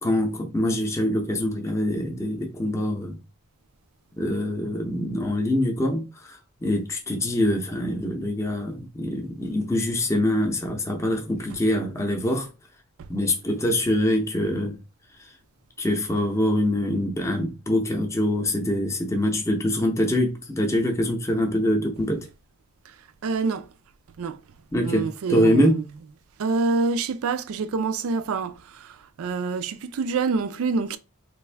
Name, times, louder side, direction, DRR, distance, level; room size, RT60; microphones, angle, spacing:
voice 1, 0.0-3.2 4.2-12.5 13.1-14.8 15.8-22.2 24.7-25.8, left 1 dB, 15° left, 0.6 m, -24 dB
voice 2, 23.2-23.7 24.2-24.4 24.8-25.8 26.4-31.0, right 4 dB, 65° right, 0.4 m, -26 dB
3.3 x 2.5 x 3.3 m
head